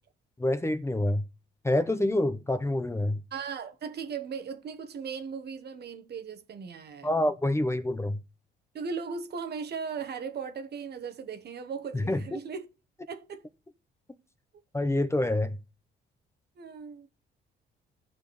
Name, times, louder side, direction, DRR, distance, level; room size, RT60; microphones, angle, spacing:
voice 1, 0.4-1.2 1.6-3.2 7.0-8.2 11.9-12.2 14.7-15.6, left 1 dB, 15° left, 0.8 m, -27 dB
voice 2, 3.3-7.3 8.7-12.7 13.1-13.5 16.6-17.1, right 6 dB, 55° right, 1.1 m, -37 dB
15.0 x 5.0 x 3.2 m
cardioid pair, 90°, 20 cm